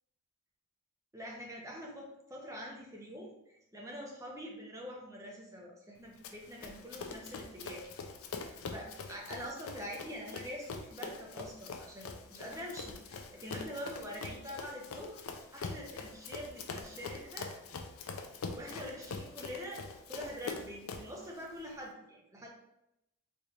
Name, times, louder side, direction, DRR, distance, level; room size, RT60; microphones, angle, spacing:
voice 1, 1.1-7.9 8.4-15.2 15.5-17.5 18.6-22.5, equal, 15° right, -1 dB, 0.6 m, -45 dB
Run, 6.2-21.2, left 4 dB, 80° left, 0.4 m, -44 dB
4.0 x 3.2 x 2.4 m, 0.84 s
head